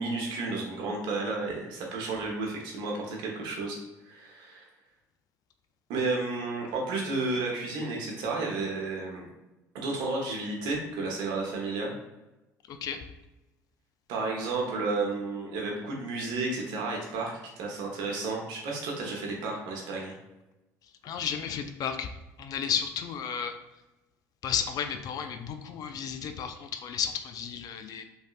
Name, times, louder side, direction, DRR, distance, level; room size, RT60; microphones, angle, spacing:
voice 1, 0.0-3.8 4.1-4.6 5.9-9.3 9.7-11.9 14.1-20.1, right 3 dB, 70° right, -1 dB, 0.9 m, -32 dB
voice 2, 12.7-13.0 21.0-22.1 22.4-23.5 24.4-28.0, left 7 dB, 55° left, 7 dB, 0.4 m, -33 dB
3.2 x 2.7 x 2.4 m, 1.0 s
hypercardioid pair, 70°, 8 cm